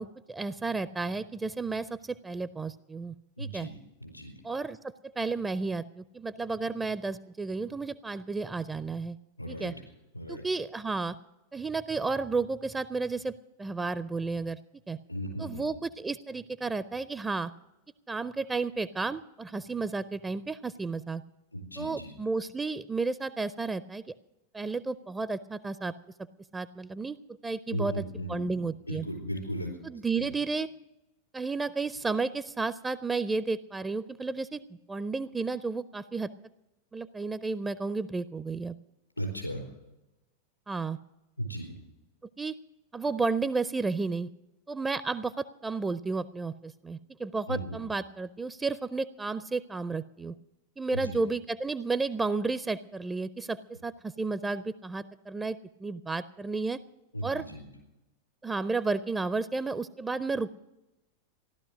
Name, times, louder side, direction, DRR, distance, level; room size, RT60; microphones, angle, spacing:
voice 1, 0.0-3.7 4.4-9.2 9.5-9.7 10.3-11.2 11.5-14.6 14.9-15.0 15.4-17.5 18.1-21.2 21.8-24.0 24.5-25.9 26.5-27.2 27.4-29.1 29.8-30.7 31.3-34.6 34.9-36.3 36.9-38.8 40.7-41.0 42.4-42.6 42.9-44.3 44.7-50.4 50.8-56.8 57.2-57.4 58.4-60.6, right 3 dB, 10° right, 15 dB, 0.4 m, -32 dB
voice 2, 3.4-3.7 4.0-4.3 9.4-9.7 10.1-10.4 15.1-15.6 21.5-22.1 27.7-29.7 30.1-30.3 39.2-39.6 41.4-41.7 47.5-47.8 50.9-51.2 57.1-57.6, equal, 90° left, 1 dB, 4.4 m, -36 dB
15.0 x 12.0 x 6.2 m, 0.95 s
figure-of-eight pair, 90°, 0 cm